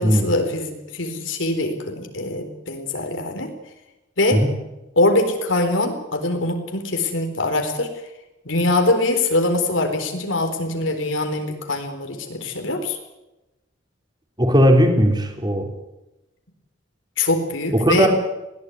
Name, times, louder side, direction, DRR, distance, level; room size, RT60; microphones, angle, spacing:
voice 1, 0.0-3.5 4.2-4.4 5.0-7.9 8.4-13.0 17.2-18.1, left 2 dB, 80° left, 6 dB, 4.2 m, -23 dB
voice 2, 14.4-15.7 17.8-18.1, equal, 20° right, 4 dB, 3.6 m, -17 dB
21.0 x 17.0 x 9.6 m, 0.98 s
head